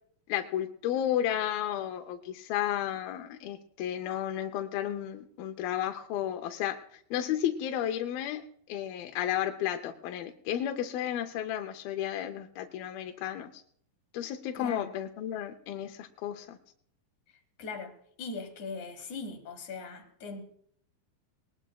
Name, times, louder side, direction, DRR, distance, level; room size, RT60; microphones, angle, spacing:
voice 1, 0.3-8.4 8.7-13.6 14.1-16.6, left 11 dB, 80° left, 5 dB, 2.5 m, -33 dB
voice 2, 14.5-14.9 17.6-20.4, left 4 dB, 60° left, 6 dB, 2.5 m, -40 dB
21.0 x 19.0 x 2.3 m, 0.62 s
omnidirectional pair, 4.2 m